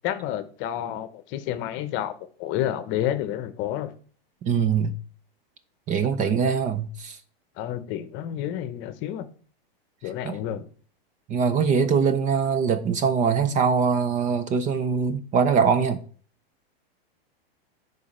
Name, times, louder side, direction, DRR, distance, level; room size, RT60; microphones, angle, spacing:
voice 1, 0.0-3.9 6.2-6.3 7.6-9.3 10.0-10.6, left 11 dB, 40° left, 0.9 m, -30 dB
voice 2, 4.5-4.9 5.9-7.2 10.2-10.4 11.3-16.0, right 6 dB, 25° right, 0.6 m, -22 dB
10.5 x 4.1 x 4.3 m
supercardioid pair, 135°, 30 cm